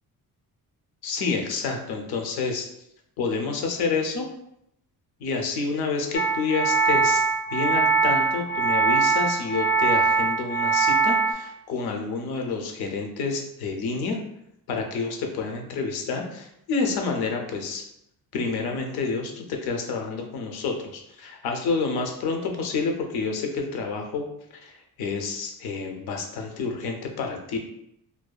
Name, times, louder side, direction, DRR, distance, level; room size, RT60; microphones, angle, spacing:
voice 1, 1.0-2.7 3.2-4.3 5.2-7.2 7.5-14.2 14.7-17.8 18.3-24.3 24.6-24.7 25.0-27.6, left 4 dB, 85° left, 3 dB, 0.6 m, -29 dB
sound 1, 6.1-11.3, right 4 dB, 30° left, 0.4 m, -22 dB
2.6 x 2.3 x 2.2 m, 0.78 s
cardioid pair, 165°, 37 cm